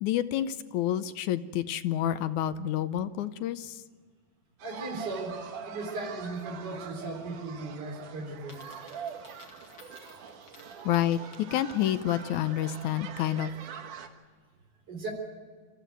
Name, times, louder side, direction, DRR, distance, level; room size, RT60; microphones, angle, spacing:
voice 1, 0.0-3.8 10.9-11.2 11.5-13.5, left 12 dB, 75° left, 12 dB, 2.1 m, -29 dB
voice 2, 4.6-8.6 14.9-15.1, right 2 dB, 30° right, 1 dB, 4.2 m, -37 dB
sound 1, 4.6-14.1, right 7 dB, 75° right, 3.0 m, -43 dB
Coin (dropping), 8.4-12.3, left 4 dB, 40° left, 2.7 m, -56 dB
25.5 x 14.5 x 9.1 m, 1.5 s
omnidirectional pair, 3.6 m